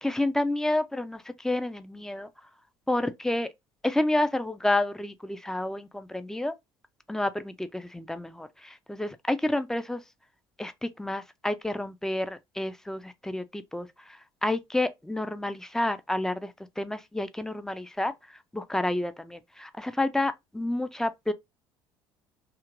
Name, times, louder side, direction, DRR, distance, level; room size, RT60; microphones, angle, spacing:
voice 1, 0.0-2.3 2.9-3.5 3.8-6.5 7.1-10.0 10.6-18.1 18.5-21.3, left 1 dB, 5° left, 0.4 m, -29 dB
2.8 x 2.4 x 2.9 m
figure-of-eight pair, 60°, 13 cm